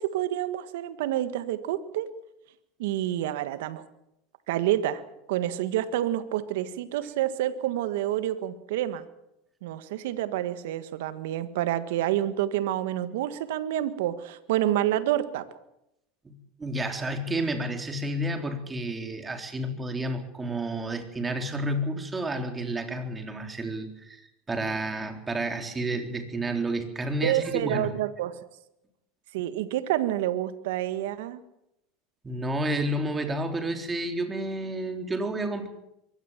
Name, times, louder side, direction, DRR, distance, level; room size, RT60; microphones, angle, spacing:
voice 1, 0.0-2.1 2.8-3.8 4.5-5.0 5.3-9.0 9.6-15.4 27.2-28.3 29.3-31.4, right 13 dB, 75° right, 13 dB, 1.6 m, -28 dB
voice 2, 16.2-24.2 24.5-27.9 32.2-35.7, right 1 dB, 20° right, 5 dB, 3.9 m, -30 dB
22.5 x 17.5 x 7.4 m, 0.85 s
hypercardioid pair, 100°, 0 cm